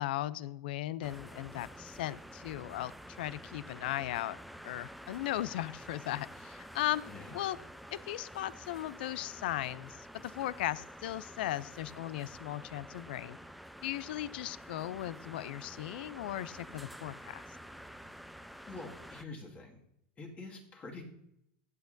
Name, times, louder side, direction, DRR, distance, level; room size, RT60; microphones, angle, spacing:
voice 1, 0.0-2.9 3.2-4.4 4.6-7.0 7.3-7.6 7.9-13.4 13.8-17.4, left 14 dB, 75° left, 20 dB, 0.4 m, -37 dB
sound 1, 1.0-19.3, equal, ahead, 0.4 m, -49 dB
voice 2, 7.1-7.4 18.7-19.8 20.2-21.0, left 3 dB, 25° left, 1 dB, 1.9 m, -46 dB
15.0 x 8.2 x 2.6 m, 0.79 s
supercardioid pair, 120°, 5 cm